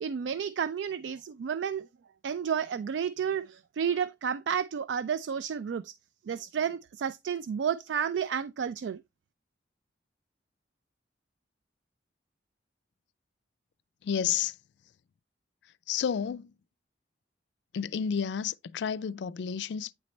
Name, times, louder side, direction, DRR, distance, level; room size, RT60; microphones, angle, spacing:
voice 1, 0.0-1.8 2.2-5.9 6.3-9.0, right 7 dB, 75° right, 0.3 m, -31 dB
voice 2, 14.0-14.5 15.9-16.5 17.7-19.9, left 7 dB, 70° left, 0.3 m, -31 dB
9.0 x 4.0 x 3.2 m
head